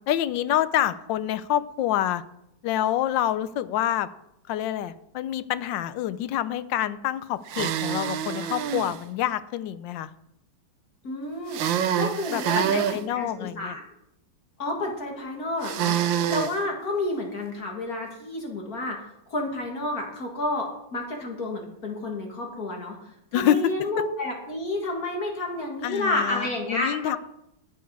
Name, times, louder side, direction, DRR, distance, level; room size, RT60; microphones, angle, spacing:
voice 1, 0.1-2.2 2.6-4.1 4.5-10.1 12.3-13.8 23.3-24.0 25.8-27.2, left 11 dB, 75° left, 14 dB, 1.2 m, -27 dB
sound 1, 7.5-9.0 11.5-13.0 15.6-16.6, right 9 dB, 70° right, 1.4 m, -26 dB
voice 2, 11.0-11.6 12.0-13.8 14.6-16.0 16.3-19.0 19.3-23.0 23.3-27.2, left 2 dB, 45° left, 1 dB, 2.2 m, -30 dB
11.5 x 9.4 x 4.7 m, 0.81 s
omnidirectional pair, 2.2 m